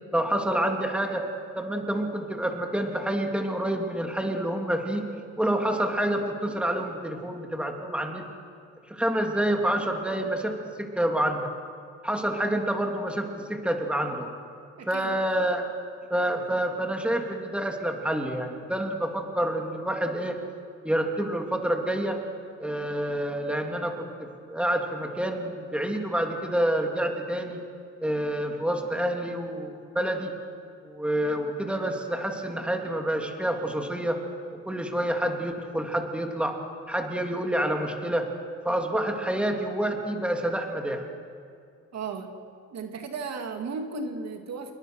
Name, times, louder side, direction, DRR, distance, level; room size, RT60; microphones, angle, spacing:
voice 1, 0.1-1.3 1.5-5.1 5.4-8.2 8.9-11.4 12.0-14.3 14.9-15.7 16.1-20.4 20.8-22.2 22.6-27.6 28.0-30.3 30.8-34.2 34.6-36.6 36.9-38.3 38.6-41.0, right 1 dB, 5° right, 2 dB, 3.0 m, -28 dB
voice 2, 14.8-15.2 41.9-42.3 42.7-44.7, right 4 dB, 60° right, 4 dB, 2.4 m, -35 dB
28.0 x 21.5 x 6.4 m, 2.3 s
cardioid pair, 90°, 30 cm